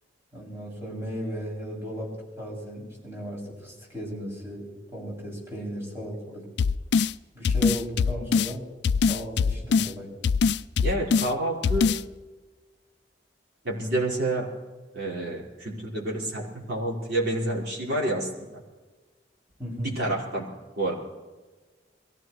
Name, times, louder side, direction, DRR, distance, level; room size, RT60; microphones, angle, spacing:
voice 1, 0.3-6.5 7.3-8.7 9.1-10.1 19.6-19.9, equal, 15° right, -5 dB, 6.9 m, -36 dB
sound 1, 6.6-7.1 7.5-8.5 8.8-9.9 10.2-11.3 11.6-12.0, left 5 dB, 65° left, 0.4 m, -22 dB
voice 2, 10.8-12.0 13.6-14.5 14.9-18.3 19.8-20.5 20.8-20.9, right 1 dB, 65° right, -4 dB, 4.6 m, -28 dB
23.0 x 16.0 x 3.2 m, 1.2 s
head